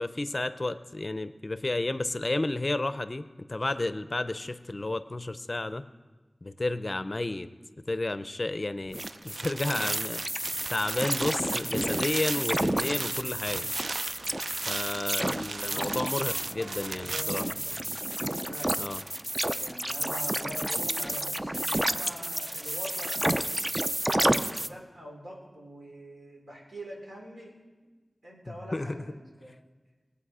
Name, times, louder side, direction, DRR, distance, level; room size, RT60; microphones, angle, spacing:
voice 1, 0.0-5.8 6.4-7.5 7.9-10.2 10.7-13.7 14.7-17.4 18.8-19.0 28.5-29.0, left 2 dB, 40° left, 12 dB, 0.5 m, -32 dB
sound 1, 8.9-24.7, right 1 dB, 20° right, 0.5 m, -31 dB
sound 2, 8.9-17.2, right 3 dB, 85° right, 0.4 m, -38 dB
sound 3, 13.0-18.1, equal, 45° right, 4.5 m, -54 dB
voice 2, 15.6-15.9 16.9-17.9 18.5-18.9 19.6-23.2 24.0-27.5 28.2-29.5, equal, 65° right, -2 dB, 3.8 m, -44 dB
21.0 x 8.4 x 4.9 m, 1.3 s
wide cardioid pair, 60°, 0 cm